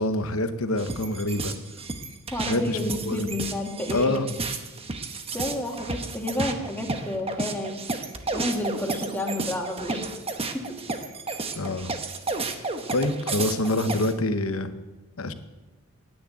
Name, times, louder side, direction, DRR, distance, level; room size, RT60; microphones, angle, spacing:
voice 1, 0.0-1.5 2.5-3.3 3.9-4.3 11.5-11.9 12.9-14.7 15.2-15.3, left 2 dB, 70° left, 10 dB, 1.0 m, -26 dB
sound 1, 0.8-14.1, right 3 dB, 25° right, 1.0 m, -32 dB
voice 2, 2.3-4.3 5.3-7.8 8.3-10.0 10.5-10.8, left 1 dB, 10° left, 0 dB, 2.1 m, -30 dB
9.8 x 9.8 x 9.3 m, 1.1 s
head